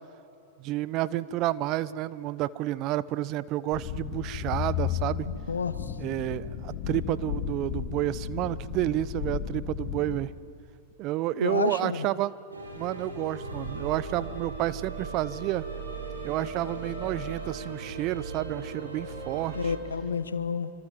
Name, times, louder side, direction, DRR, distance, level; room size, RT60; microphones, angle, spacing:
voice 1, 0.6-5.3 6.0-10.3 11.0-12.3 12.8-15.6 16.2-19.7, right 15 dB, 40° right, 18 dB, 0.8 m, -30 dB
sound 1, 3.7-10.2, left 10 dB, 55° left, 6.4 m, -34 dB
voice 2, 5.3-5.9 11.4-12.1 19.5-20.7, left 5 dB, 80° left, 13 dB, 1.3 m, -30 dB
sound 2, 12.5-19.8, right 3 dB, 85° right, 5.5 m, -37 dB
26.5 x 25.5 x 7.5 m, 2.7 s
figure-of-eight pair, 100°, 0 cm